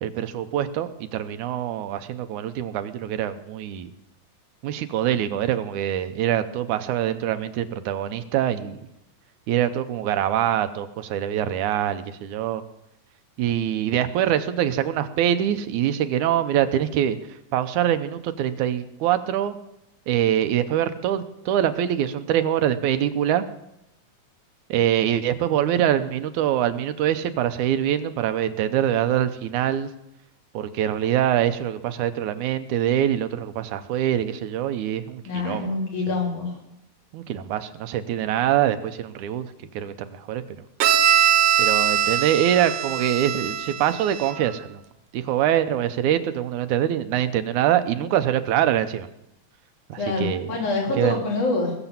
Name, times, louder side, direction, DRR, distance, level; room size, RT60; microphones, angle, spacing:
voice 1, 0.0-3.9 4.6-8.8 9.5-12.6 13.4-17.2 17.5-19.6 20.1-23.4 24.7-29.9 30.5-35.7 36.1-36.2 37.1-40.4 41.6-44.8 45.1-49.1 49.9-50.5 50.9-51.2, right 11 dB, 90° right, 10 dB, 2.3 m, -24 dB
voice 2, 35.3-36.5 50.0-51.7, left 3 dB, 80° left, -3 dB, 5.4 m, -26 dB
Bowed string instrument, 40.8-44.5, right 9 dB, 70° right, 1.9 m, -22 dB
20.5 x 7.0 x 7.4 m, 0.85 s
omnidirectional pair, 3.4 m